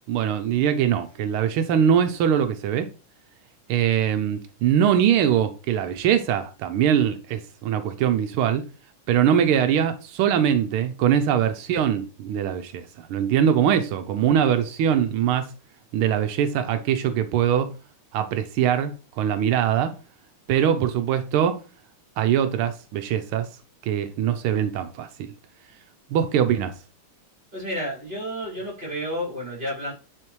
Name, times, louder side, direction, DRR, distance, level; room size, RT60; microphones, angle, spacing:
voice 1, 0.1-2.9 3.7-8.6 9.1-15.5 15.9-17.7 18.1-20.0 20.5-21.6 22.2-23.5 23.8-25.3 26.1-26.7, right 9 dB, 85° right, 1.5 m, -22 dB
voice 2, 27.5-29.9, equal, 20° right, 4.0 m, -31 dB
9.8 x 4.2 x 3.1 m
omnidirectional pair, 2.3 m